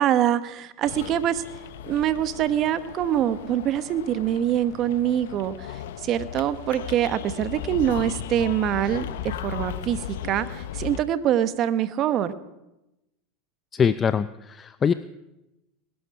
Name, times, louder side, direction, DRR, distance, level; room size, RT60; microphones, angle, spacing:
voice 1, 0.0-1.4 1.8-12.3, right 10 dB, 45° right, 13 dB, 1.0 m, -24 dB
sound 1, 0.8-11.0, left 11 dB, 80° left, 0.7 m, -36 dB
voice 2, 13.7-14.9, left 7 dB, 30° left, 14 dB, 0.5 m, -23 dB
20.0 x 11.0 x 5.9 m, 0.95 s
hypercardioid pair, 105°, 0 cm